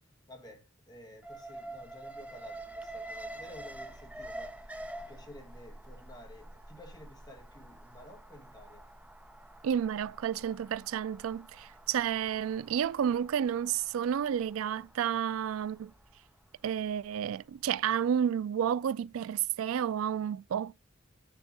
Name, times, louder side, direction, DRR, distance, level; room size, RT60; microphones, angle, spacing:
voice 1, 0.3-8.9, equal, 20° left, 1.7 m, -52 dB
Alarm, 1.2-17.3 17.6-17.7, right 1 dB, 5° right, 0.6 m, -47 dB
voice 2, 9.6-15.9 16.6-20.7, right 8 dB, 75° right, 0.3 m, -31 dB
8.9 x 3.5 x 5.3 m
head